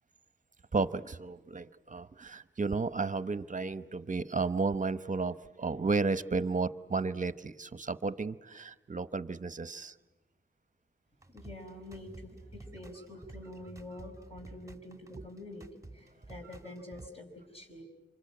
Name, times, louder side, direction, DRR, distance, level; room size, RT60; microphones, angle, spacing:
voice 1, 0.7-9.9, right 4 dB, 40° right, 15 dB, 0.9 m, -33 dB
sound 1, 11.2-17.1, right 2 dB, 15° right, 1.6 m, -51 dB
voice 2, 11.3-15.7 15.9-17.8, left 1 dB, 30° left, 2 dB, 5.2 m, -47 dB
27.0 x 24.5 x 8.9 m, 1.1 s
wide cardioid pair, 70°, 20 cm